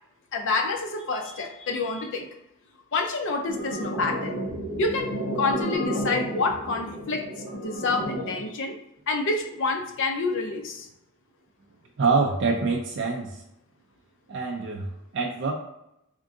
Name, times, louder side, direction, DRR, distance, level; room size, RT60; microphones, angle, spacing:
voice 1, 0.3-2.3 2.9-4.4 4.8-5.1 5.3-7.3 7.5-8.8 9.1-10.9, left 3 dB, 55° left, 4 dB, 0.5 m, -28 dB
sound 1, 3.5-8.5, equal, 75° left, 1.2 m, -31 dB
voice 2, 12.0-13.4 14.3-15.5, right 4 dB, 55° right, 0 dB, 0.4 m, -25 dB
3.6 x 2.5 x 3.7 m, 0.82 s
head